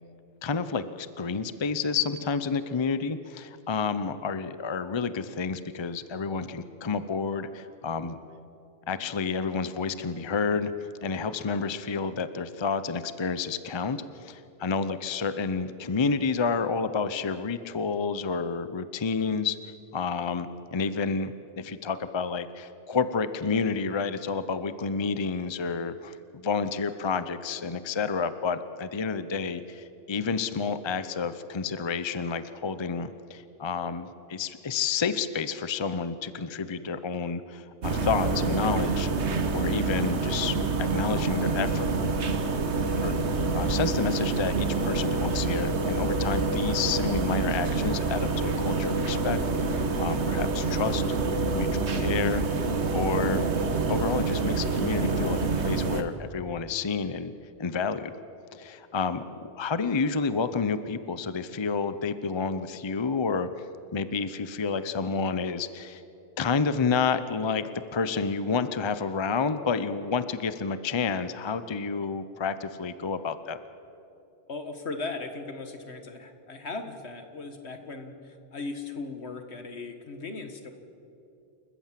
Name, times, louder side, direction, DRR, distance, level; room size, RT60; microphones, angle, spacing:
voice 1, 0.4-8.2 8.9-19.6 19.9-39.1 39.5-40.6 40.9-41.9 43.0-43.1 43.5-49.4 50.0-51.0 51.5-52.6 52.9-53.5 53.9-57.3 57.6-58.1 58.5-66.0 66.4-73.6, left 5 dB, 30° left, 12 dB, 0.7 m, -30 dB
sound 1, 37.8-56.0, right 3 dB, 80° right, 1.6 m, -27 dB
voice 2, 74.5-80.7, left 3 dB, 70° left, 6 dB, 1.9 m, -38 dB
28.5 x 14.5 x 7.5 m, 2.8 s
omnidirectional pair, 1.1 m